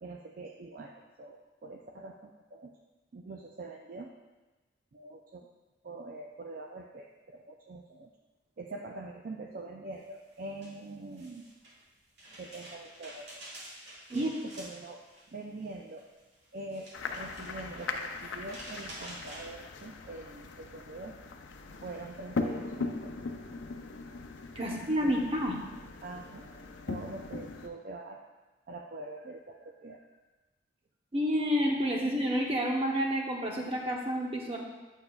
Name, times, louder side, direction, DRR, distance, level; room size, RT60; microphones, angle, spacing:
voice 1, 0.0-2.7 3.1-4.1 4.9-5.5 5.8-8.1 8.6-11.5 12.4-13.4 14.1-15.0 15.3-16.0 16.5-21.2 21.8-23.1 24.6-25.2 26.0-26.4 26.9-28.2 28.7-30.0, right 2 dB, 50° right, 1 dB, 0.4 m, -44 dB
sound 1, 10.0-19.4, right 1 dB, 65° right, 2.2 m, -50 dB
sound 2, 16.9-27.7, left 3 dB, 80° left, 0.5 m, -40 dB
voice 2, 24.5-25.6 31.1-34.6, equal, 30° right, -1 dB, 0.9 m, -29 dB
8.7 x 6.4 x 2.3 m, 1.2 s
head